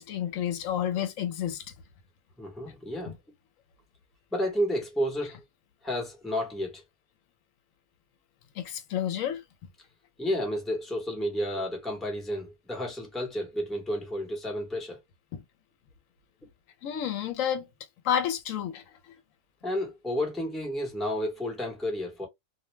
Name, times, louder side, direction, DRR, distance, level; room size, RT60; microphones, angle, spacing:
voice 1, 0.0-1.6 3.1-3.2 8.6-9.4 15.3-15.4 16.8-17.7 18.0-18.8, left 9 dB, 80° left, 0.9 m, -30 dB
voice 2, 2.4-3.1 4.3-5.4 5.8-6.8 10.2-15.0 19.6-22.3, equal, ahead, 0.8 m, -31 dB
2.4 x 2.1 x 3.1 m
omnidirectional pair, 1.4 m